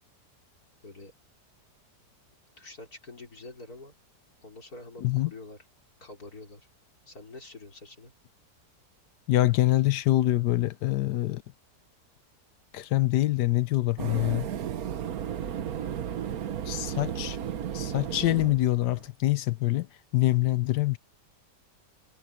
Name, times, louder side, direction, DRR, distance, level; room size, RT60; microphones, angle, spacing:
voice 1, 2.6-3.9 4.4-5.6 6.0-6.7 7.1-8.1, left 2 dB, 60° left, 4.9 m, -46 dB
voice 2, 5.0-5.3 9.3-11.4 12.7-14.5 16.7-17.4 17.7-19.9 20.1-21.0, left 16 dB, 80° left, 1.3 m, -25 dB
sound 1, 14.0-19.1, right 9 dB, 60° right, 1.4 m, -34 dB
omnidirectional pair, 1.8 m